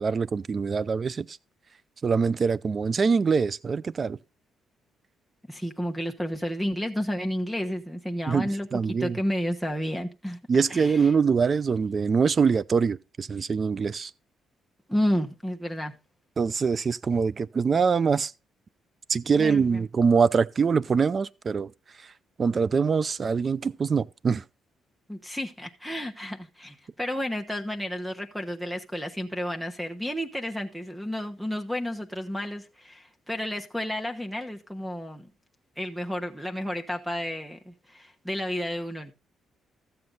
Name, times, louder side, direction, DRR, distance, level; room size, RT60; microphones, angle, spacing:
voice 1, 0.0-1.4 2.0-4.2 8.3-9.2 10.5-14.1 16.4-18.3 19.1-21.7 22.4-24.4, right 5 dB, 40° right, 0.5 m, -24 dB
voice 2, 5.5-10.4 10.7-11.1 14.9-15.9 19.4-19.8 25.1-35.3 35.8-39.1, equal, 5° right, 1.1 m, -31 dB
13.5 x 7.7 x 4.0 m
cardioid pair, 90°, 0 cm